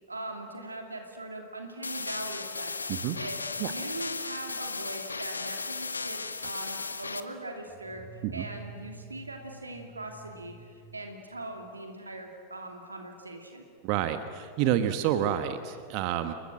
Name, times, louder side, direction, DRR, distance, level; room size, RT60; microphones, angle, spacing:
voice 1, 0.1-8.0 8.3-13.6, right 2 dB, 80° right, 3 dB, 2.8 m, -41 dB
sound 1, 1.8-7.2, left 4 dB, 80° left, 1.1 m, -35 dB
sound 2, 7.7-11.8, right 4 dB, 25° left, 4.8 m, -49 dB
voice 2, 13.8-16.3, right 10 dB, 45° right, 9 dB, 1.3 m, -28 dB
29.0 x 22.0 x 7.7 m, 2.3 s
figure-of-eight pair, 90°, 0 cm